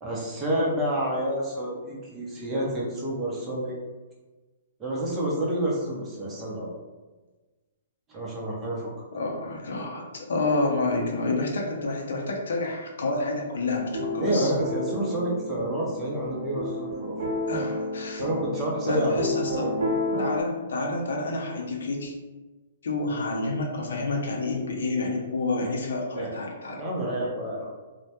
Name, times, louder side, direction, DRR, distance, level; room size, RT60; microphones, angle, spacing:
voice 1, 0.0-3.7 4.8-6.7 8.1-8.9 14.2-17.2 18.2-19.2 19.6-19.8 26.1-26.3 26.8-27.7, right 1 dB, 15° right, -4 dB, 0.6 m, -29 dB
voice 2, 9.1-14.5 17.5-18.2 18.9-19.7 20.2-22.1 22.8-26.8, left 2 dB, 75° left, 0 dB, 0.5 m, -29 dB
sound 1, 13.7-20.4, left 1 dB, 85° right, 0.6 m, -31 dB
2.1 x 2.1 x 2.8 m, 1.2 s
hypercardioid pair, 145°, 0 cm